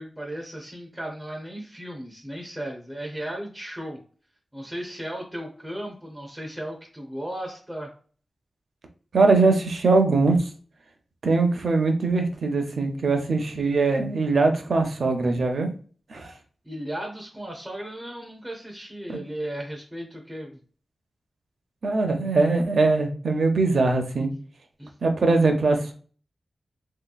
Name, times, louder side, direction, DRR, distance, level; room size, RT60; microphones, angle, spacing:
voice 1, 0.0-4.0 4.5-7.9 16.6-20.6 24.8-24.9, right 1 dB, 5° right, -1 dB, 0.6 m, -35 dB
voice 2, 9.1-10.5 11.2-15.7 16.1-16.3 19.1-19.2 21.8-24.3 25.0-25.9, right 3 dB, 60° right, 5 dB, 0.6 m, -21 dB
3.2 x 2.8 x 2.3 m, 0.43 s
wide cardioid pair, 150°, 0 cm